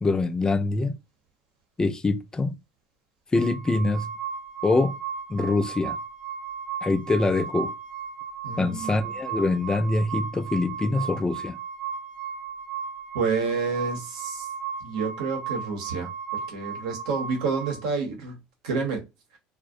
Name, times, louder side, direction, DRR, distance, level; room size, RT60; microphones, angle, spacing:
voice 1, 0.0-0.9 1.8-2.6 3.3-4.1 4.6-4.9 5.3-6.0 6.8-7.7 8.6-11.6, left 3 dB, 20° left, 0.4 m, -24 dB
sound 1, 3.4-17.8, right 7 dB, 45° right, 0.4 m, -35 dB
voice 2, 8.4-8.9 13.1-14.5 14.8-18.4 18.6-19.0, right 4 dB, 85° right, 0.8 m, -29 dB
2.4 x 2.1 x 2.6 m
supercardioid pair, 90°, 4 cm